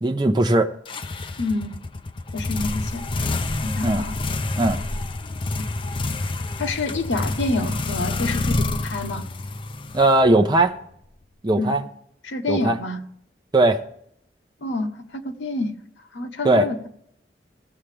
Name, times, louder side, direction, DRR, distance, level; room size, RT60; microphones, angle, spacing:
voice 1, 0.0-0.7 3.8-4.1 4.6-4.8 9.9-10.7 11.4-11.8 12.5-12.8 13.5-13.8 16.4-16.7, right 2 dB, 25° right, 5 dB, 0.7 m, -18 dB
sound 1, 0.8-10.6, left 2 dB, 30° left, 0.4 m, -28 dB
voice 2, 1.4-1.7 2.3-3.0 3.6-4.2 5.6-5.7 6.6-9.2 11.6-11.8 12.2-13.0 14.6-15.7 16.1-16.9, left 2 dB, 85° left, 5 dB, 1.0 m, -27 dB
16.0 x 7.4 x 3.3 m, 0.70 s
head